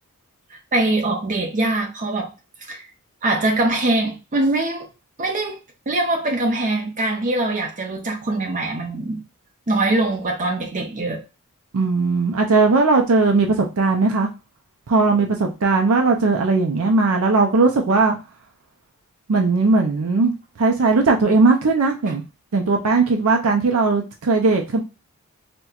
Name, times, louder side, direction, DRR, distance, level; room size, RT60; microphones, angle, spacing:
voice 1, 0.5-2.3 2.6-2.9 3.2-4.9 5.2-5.6 5.9-9.2 9.7-11.2, right 2 dB, 35° right, 0.9 m, -22 dB
voice 2, 11.7-14.3 14.9-18.2 19.3-20.3 20.6-22.2 22.5-24.8, right 3 dB, 70° right, 0.5 m, -18 dB
4.2 x 2.2 x 2.3 m
head